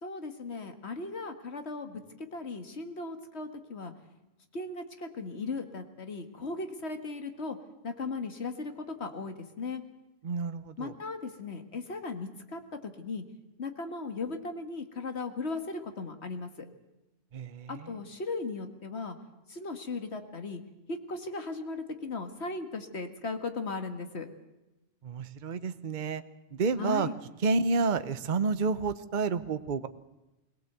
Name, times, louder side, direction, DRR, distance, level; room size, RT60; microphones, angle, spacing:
voice 1, 0.0-3.9 4.5-7.6 7.8-9.8 10.8-13.2 13.6-16.7 17.7-19.2 19.5-20.6 20.9-24.3 26.8-27.1, left 3 dB, 60° left, 7 dB, 2.0 m, -37 dB
voice 2, 10.2-10.9 17.3-17.9 25.0-26.2 26.5-27.1 27.4-29.9, right 4 dB, 45° right, 12 dB, 0.9 m, -30 dB
21.5 x 17.5 x 8.1 m, 0.99 s
omnidirectional pair, 1.3 m